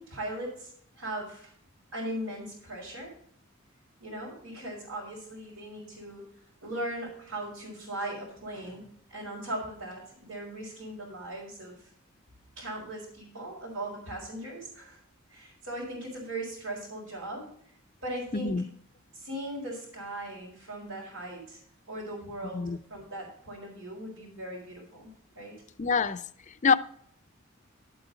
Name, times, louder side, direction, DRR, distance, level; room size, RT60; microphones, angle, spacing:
voice 1, 0.0-1.5 1.9-3.1 4.0-6.3 6.6-8.8 9.1-11.8 12.6-15.0 15.3-17.5 18.0-18.5 19.1-21.6 21.9-22.6 22.9-25.1 25.3-25.5, right 1 dB, 75° right, 4.4 m, -38 dB
voice 2, 18.3-18.7 22.5-22.8 25.8-26.2 26.6-26.8, left 5 dB, 35° left, 0.5 m, -25 dB
12.0 x 8.0 x 4.0 m
head